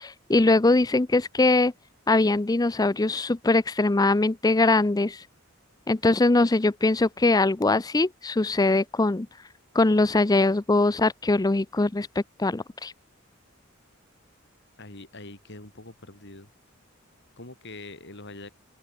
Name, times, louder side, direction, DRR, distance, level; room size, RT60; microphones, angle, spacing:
voice 1, 0.0-1.7 2.1-5.2 5.9-9.3 9.7-12.9, left 2 dB, 20° left, 0.5 m, -22 dB
voice 2, 14.8-16.5 17.4-18.5, left 2 dB, 60° left, 7.1 m, -43 dB
head